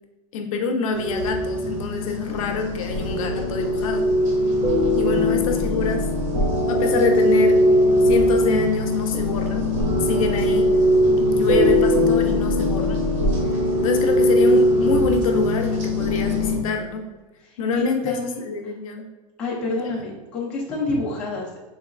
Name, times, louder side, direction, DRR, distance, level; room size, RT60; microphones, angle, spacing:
voice 1, 0.3-4.1 5.0-6.1 6.6-7.6 8.0-9.7 10.0-10.8 11.2-13.1 13.8-17.1 17.6-19.1, left 4 dB, 60° left, 4 dB, 0.5 m, -26 dB
sound 1, 0.9-16.6, left 1 dB, 55° right, 1.0 m, -20 dB
voice 2, 17.4-18.7 19.4-21.6, left 3 dB, 5° left, -6 dB, 0.3 m, -29 dB
3.8 x 2.9 x 2.4 m, 1.2 s
supercardioid pair, 175°, 19 cm